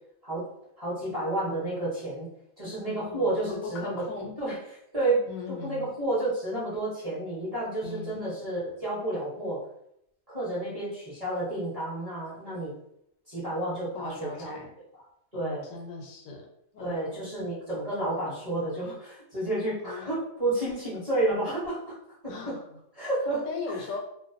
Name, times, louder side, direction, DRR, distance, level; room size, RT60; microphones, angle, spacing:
voice 1, 0.8-2.3 2.6-4.6 4.9-5.2 5.5-9.6 10.3-12.7 13.3-14.6 14.9-15.0 15.3-15.7 16.8-22.0 22.2-22.6 22.9-23.4 23.7-23.8, right 2 dB, 35° right, -9 dB, 0.7 m, -30 dB
voice 2, 3.1-4.3 5.3-5.9 7.8-8.2 13.9-14.7 15.3-16.5 16.7-17.2 19.8-20.2 22.3-22.6 23.5-24.0, left 4 dB, 80° left, 1 dB, 1.0 m, -38 dB
2.4 x 2.2 x 2.4 m, 0.76 s
omnidirectional pair, 1.4 m